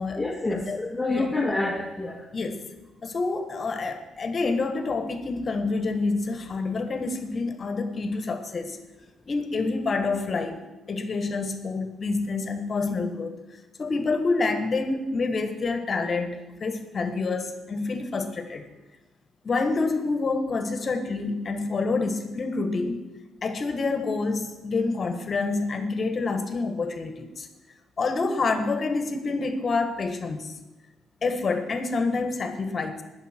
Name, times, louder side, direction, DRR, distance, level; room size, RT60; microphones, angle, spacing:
voice 1, 0.1-2.3, left 2 dB, 10° left, 1 dB, 1.4 m, -27 dB
voice 2, 2.3-2.7 3.0-8.8 9.3-10.6 10.9-13.4 13.8-18.6 19.4-23.0 23.4-27.5 28.0-30.5 31.2-33.0, left 3 dB, 40° left, 7 dB, 1.5 m, -27 dB
19.0 x 6.8 x 4.5 m, 1.0 s
cardioid pair, 90°, 0 cm